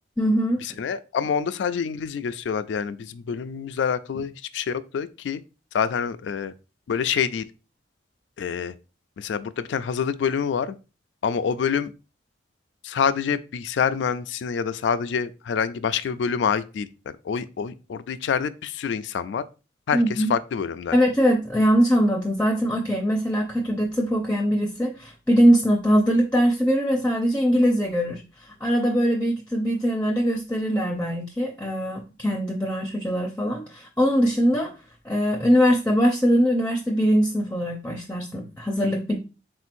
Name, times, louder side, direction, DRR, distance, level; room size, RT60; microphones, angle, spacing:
voice 1, 0.2-0.6 19.9-20.3 20.9-34.7 35.0-39.2, equal, 10° left, 0.5 m, -22 dB
voice 2, 0.8-5.4 5.7-6.5 6.9-7.4 8.4-8.7 9.2-10.8 11.2-11.9 12.8-16.9 17.2-19.4 19.9-21.0, left 7 dB, 75° left, 0.3 m, -26 dB
4.4 x 3.7 x 2.5 m
head